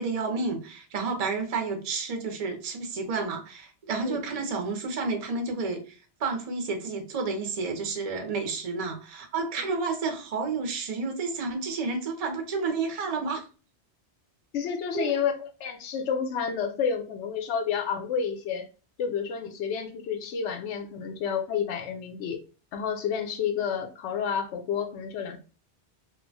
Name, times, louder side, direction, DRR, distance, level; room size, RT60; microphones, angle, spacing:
voice 1, 0.0-13.5 14.9-15.2, right 4 dB, 45° right, 0.5 m, -30 dB
voice 2, 14.5-18.7 19.0-22.4 22.7-25.4, left 7 dB, 85° left, 0.9 m, -30 dB
3.0 x 2.1 x 2.6 m
omnidirectional pair, 1.2 m